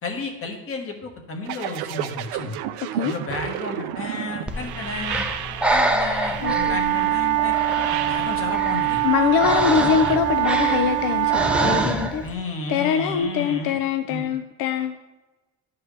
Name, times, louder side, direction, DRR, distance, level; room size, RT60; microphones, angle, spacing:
voice 1, 0.0-2.6 3.0-5.3 5.7-7.5 7.9-9.0 12.2-13.8 14.1-14.2, left 3 dB, 35° left, 2 dB, 1.5 m, -32 dB
sound 1, 1.4-10.2, right 12 dB, 85° right, 0.6 m, -33 dB
Breathing, 4.5-12.3, right 1 dB, 5° right, 0.6 m, -27 dB
voice 2, 6.4-6.8 9.0-12.2 12.7-15.0, left 8 dB, 65° left, 8 dB, 0.6 m, -23 dB
sound 2, 6.4-11.9, right 14 dB, 40° right, 0.7 m, -23 dB
11.0 x 4.6 x 3.3 m, 1.1 s
cardioid pair, 110°, 38 cm